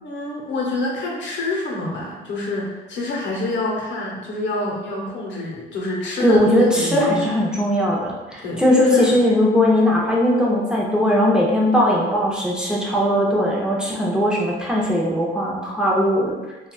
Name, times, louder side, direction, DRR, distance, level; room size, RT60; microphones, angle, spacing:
voice 1, 0.0-6.4 6.7-7.3 8.4-9.1, left 2 dB, 70° left, -1 dB, 0.7 m, -27 dB
voice 2, 6.2-16.3, left 1 dB, 5° right, -5 dB, 0.6 m, -19 dB
2.9 x 2.3 x 2.2 m, 1.1 s
cardioid pair, 90°, 20 cm